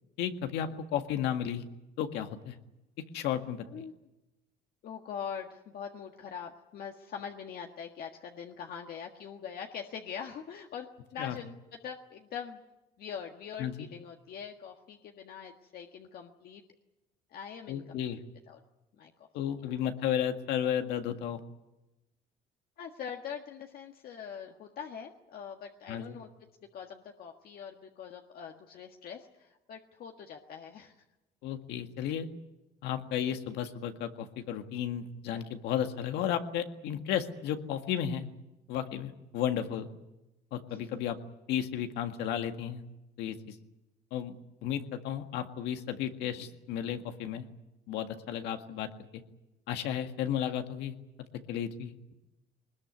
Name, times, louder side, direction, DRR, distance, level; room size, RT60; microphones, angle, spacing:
voice 1, 0.2-1.6 2.0-2.6 3.1-3.8 11.2-11.4 13.6-13.7 17.7-18.2 19.3-21.4 25.9-26.2 31.4-32.3 32.8-38.3 38.7-39.9 40.5-41.2 41.5-42.8 43.2-43.6 44.1-44.4 44.6-47.5 47.9-48.9 49.1-49.2 49.7-50.9 51.5-52.1, left 9 dB, 85° left, 6 dB, 1.8 m, -33 dB
voice 2, 4.8-12.6 13.0-16.6 17.3-18.2 18.5-18.6 19.0-19.3 19.6-19.7 22.8-26.3 26.7-31.0 40.7-40.9, left 7 dB, 65° left, 2 dB, 1.7 m, -43 dB
21.5 x 20.5 x 9.6 m, 0.98 s
cardioid pair, 110°, 17 cm